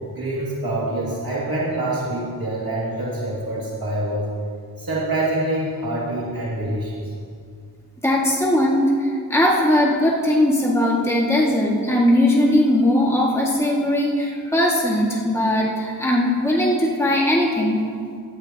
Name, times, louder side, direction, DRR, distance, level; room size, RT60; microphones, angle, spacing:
voice 1, 0.0-4.3 4.8-7.1, right 1 dB, 70° right, -6 dB, 2.5 m, -26 dB
voice 2, 8.0-17.8, left 1 dB, 5° left, -4 dB, 2.0 m, -19 dB
16.0 x 12.5 x 3.0 m, 2.2 s
cardioid pair, 40°, 37 cm